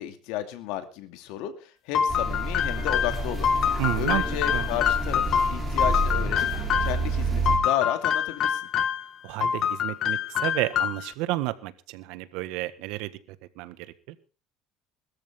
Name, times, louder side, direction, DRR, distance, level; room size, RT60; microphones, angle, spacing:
voice 1, 0.0-6.5 6.8-8.7, left 12 dB, 70° left, 9 dB, 2.5 m, -33 dB
sound 1, 1.9-7.0 7.5-9.1 9.4-11.1, left 8 dB, 40° left, 1.2 m, -26 dB
sound 2, 2.1-7.6, right 2 dB, 15° right, 4.0 m, -29 dB
voice 2, 3.8-4.2 4.5-4.7 9.2-13.1 13.6-13.8 14.1-14.2, right 18 dB, 70° right, 14 dB, 1.5 m, -30 dB
21.0 x 13.5 x 3.7 m, 0.35 s
cardioid pair, 170°, 0 cm